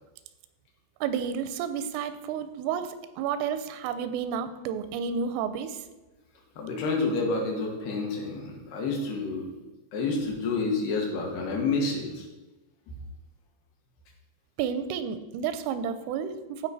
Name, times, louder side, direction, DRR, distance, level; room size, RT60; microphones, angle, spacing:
voice 1, 1.0-5.8 14.6-16.7, right 7 dB, 90° right, 11 dB, 3.2 m, -31 dB
voice 2, 6.6-9.5 9.9-12.3, left 3 dB, 65° left, 0 dB, 3.1 m, -29 dB
15.0 x 5.0 x 4.1 m, 1.1 s
omnidirectional pair, 5.6 m